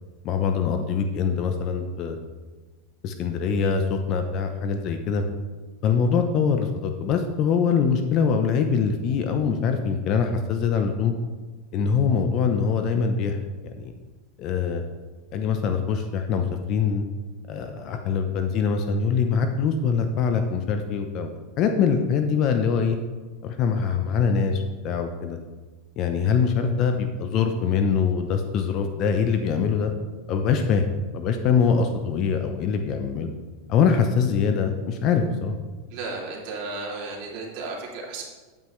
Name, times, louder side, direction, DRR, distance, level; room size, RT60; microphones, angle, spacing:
voice 1, 0.2-2.2 3.0-5.3 5.8-11.1 11.7-13.4 13.7-13.9 14.4-14.8 15.3-17.0 17.5-21.3 21.6-23.0 23.4-25.4 26.0-29.9 30.3-30.9 31.1-33.3 33.7-35.5, left 6 dB, 45° left, 6 dB, 0.7 m, -23 dB
voice 2, 35.9-38.2, right 3 dB, 55° right, -2 dB, 2.8 m, -34 dB
9.7 x 8.8 x 3.2 m, 1.3 s
supercardioid pair, 135°, 0 cm